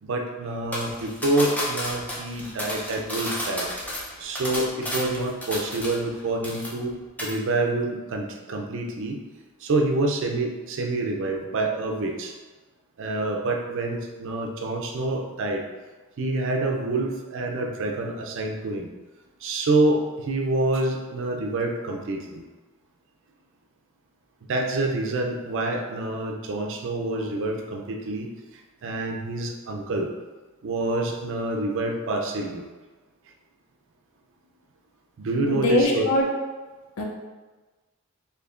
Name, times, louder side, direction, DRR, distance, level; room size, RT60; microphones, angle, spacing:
voice 1, 0.0-3.7 4.2-6.9 7.2-9.2 9.6-12.3 13.0-15.6 16.2-18.9 19.4-22.4 24.5-28.3 28.8-30.1 30.6-32.6 35.2-36.0, right 2 dB, 60° right, 2 dB, 0.4 m, -27 dB
sound 1, 0.7-6.2 6.4-6.9 7.2-7.4, equal, 5° left, 0.6 m, -32 dB
voice 2, 35.5-36.3 37.0-37.1, left 2 dB, 70° left, -1 dB, 0.6 m, -22 dB
4.4 x 2.8 x 2.4 m, 1.3 s
head